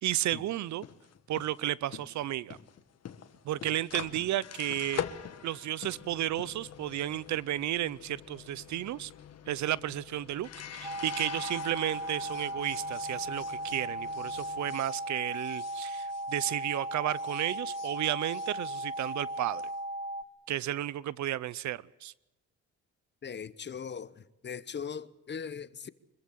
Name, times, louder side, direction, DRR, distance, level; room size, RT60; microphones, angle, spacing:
voice 1, 0.0-0.8 1.3-2.6 3.4-5.0 5.4-9.1 9.5-19.6 20.5-22.1, right 13 dB, 70° right, 0.7 m, -33 dB
sound 1, 0.6-16.8 17.1-19.7, left 9 dB, 55° left, 1.7 m, -45 dB
sound 2, 10.8-20.2, right 1 dB, 15° right, 0.9 m, -37 dB
voice 2, 23.2-25.9, left 7 dB, 35° left, 1.0 m, -40 dB
25.0 x 14.5 x 9.9 m
cardioid pair, 90°, 30 cm